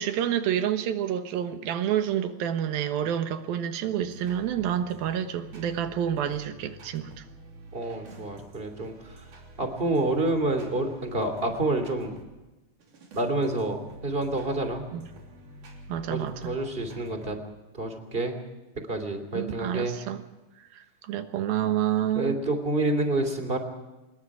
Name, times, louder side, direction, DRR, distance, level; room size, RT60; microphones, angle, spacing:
voice 1, 0.0-7.2 14.9-15.1 15.9-16.5 19.3-20.2 20.7-22.4, right 10 dB, 85° right, 8 dB, 3.1 m, -28 dB
sound 1, 4.0-12.3 12.8-17.4, right 1 dB, 60° right, 4.9 m, -48 dB
voice 2, 7.7-9.2 9.6-12.1 13.1-14.8 16.1-17.4 17.7-18.4 18.9-20.0 22.1-23.6, right 2 dB, 15° right, 6 dB, 2.5 m, -28 dB
26.0 x 21.5 x 4.9 m, 1.1 s
omnidirectional pair, 4.1 m